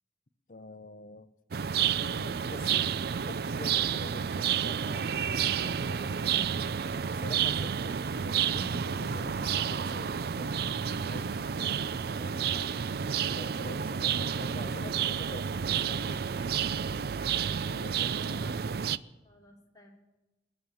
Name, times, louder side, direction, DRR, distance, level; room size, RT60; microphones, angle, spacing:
voice 1, 0.5-1.3 1.9-6.5 7.0-10.7 11.0-11.8 12.2-12.8 13.2-16.2 17.4-18.5, left 2 dB, 45° left, 12 dB, 0.8 m, -46 dB
sound 1, 1.5-19.0, right 7 dB, 55° right, 0.4 m, -30 dB
voice 2, 18.1-18.6 19.2-19.9, left 1 dB, 20° left, -1 dB, 3.0 m, -57 dB
19.0 x 7.2 x 9.9 m, 1.1 s
head